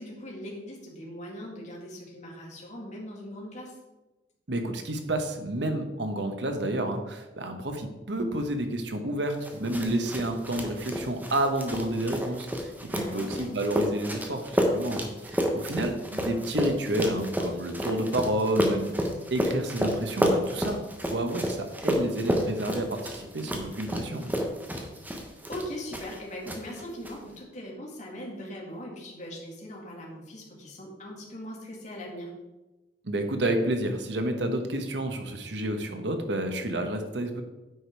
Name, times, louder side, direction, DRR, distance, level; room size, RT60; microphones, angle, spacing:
voice 1, 0.0-3.8 12.9-13.5 25.5-32.3, equal, 45° left, -2 dB, 2.2 m, -40 dB
voice 2, 4.5-24.3 33.0-37.4, right 1 dB, 75° right, 6 dB, 1.1 m, -30 dB
sound 1, 9.4-26.2 26.5-27.1, equal, 10° right, 1.0 m, -30 dB
9.3 x 5.1 x 4.6 m, 1.1 s
head